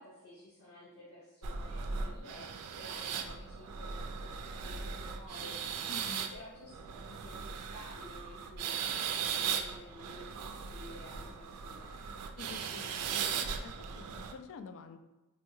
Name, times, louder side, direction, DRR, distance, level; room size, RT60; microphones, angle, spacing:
voice 1, 0.0-6.8 7.1-12.0, left 1 dB, 75° left, -9 dB, 1.3 m, -53 dB
sound 1, 1.4-14.3, right 6 dB, 90° right, 0.4 m, -38 dB
voice 2, 5.9-6.3 12.4-13.2 13.6-15.0, left 5 dB, 60° left, 8 dB, 0.3 m, -48 dB
4.3 x 2.2 x 3.0 m, 1.1 s
head